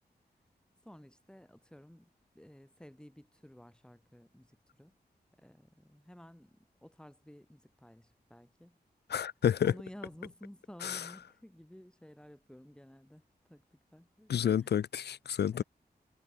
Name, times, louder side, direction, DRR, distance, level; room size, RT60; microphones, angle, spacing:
voice 1, 0.8-4.9 5.4-8.8 9.6-14.8 15.5-15.6, equal, 5° left, 6.9 m, -54 dB
voice 2, 9.1-9.7 14.3-15.6, left 9 dB, 75° left, 0.5 m, -29 dB
wide cardioid pair, 140°, 17 cm